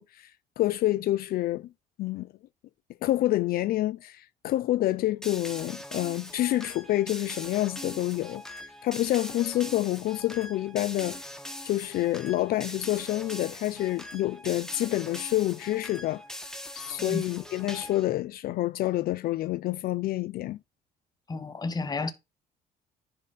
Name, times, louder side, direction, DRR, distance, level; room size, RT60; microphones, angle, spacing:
voice 1, 0.0-1.7 2.0-2.3 3.0-11.2 11.6-16.2 16.7-20.6, left 15 dB, 60° left, 0.4 m, -28 dB
sound 1, 5.2-18.1, left 1 dB, 5° left, 1.2 m, -42 dB
voice 2, 21.3-22.1, left 3 dB, 25° left, 1.0 m, -31 dB
10.0 x 3.6 x 4.2 m
cardioid pair, 110°, 17 cm